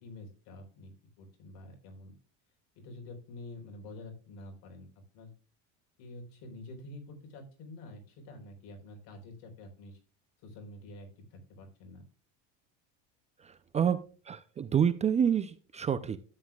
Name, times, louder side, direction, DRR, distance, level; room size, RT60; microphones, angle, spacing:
voice 1, 0.0-2.1 2.8-5.3 6.0-10.0 10.4-12.0, left 2 dB, 65° left, 3 dB, 4.2 m, -48 dB
voice 2, 13.4-14.0 14.2-16.2, right 8 dB, 20° right, 12 dB, 0.4 m, -28 dB
13.0 x 9.4 x 2.3 m, 0.37 s
cardioid pair, 150°, 35 cm